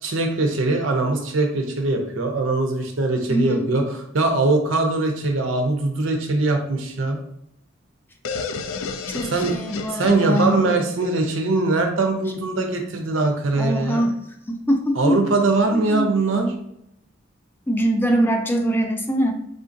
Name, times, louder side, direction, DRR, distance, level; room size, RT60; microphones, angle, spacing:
voice 1, 0.0-7.2 9.2-9.6 9.9-14.1 15.0-16.5, right 3 dB, 75° right, 4 dB, 0.6 m, -22 dB
voice 2, 3.3-3.7 9.1-10.6 13.5-14.2 14.5-15.2 15.7-16.1 17.7-19.3, right 1 dB, 10° left, 3 dB, 0.3 m, -22 dB
sound 1, 8.2-12.0, left 4 dB, 90° left, 0.3 m, -32 dB
3.7 x 2.5 x 2.6 m, 0.77 s
head